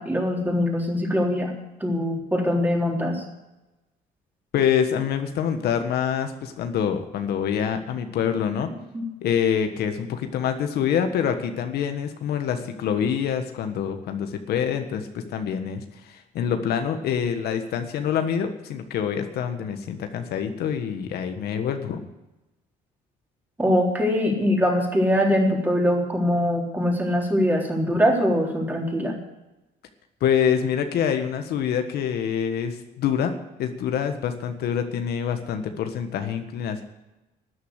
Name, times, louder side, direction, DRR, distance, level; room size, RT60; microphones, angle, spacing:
voice 1, 0.0-1.5 1.8-3.2 8.9-9.1 23.6-29.2, equal, 10° right, 0 dB, 3.7 m, -22 dB
voice 2, 4.5-8.7 9.2-22.1 30.2-33.3 33.6-36.8, left 8 dB, 70° left, 7 dB, 1.5 m, -26 dB
13.0 x 9.5 x 8.1 m, 1.0 s
cardioid pair, 110°, 17 cm